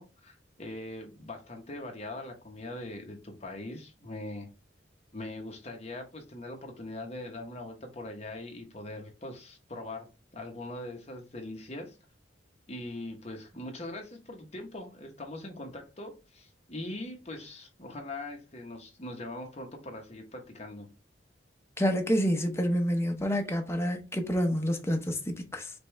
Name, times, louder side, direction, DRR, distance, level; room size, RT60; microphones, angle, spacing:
voice 1, 0.0-4.5 5.1-10.1 10.3-12.0 12.7-20.9, left 1 dB, 35° left, 1.1 m, -41 dB
voice 2, 21.8-25.7, equal, 15° left, 0.7 m, -28 dB
5.2 x 2.4 x 3.1 m
head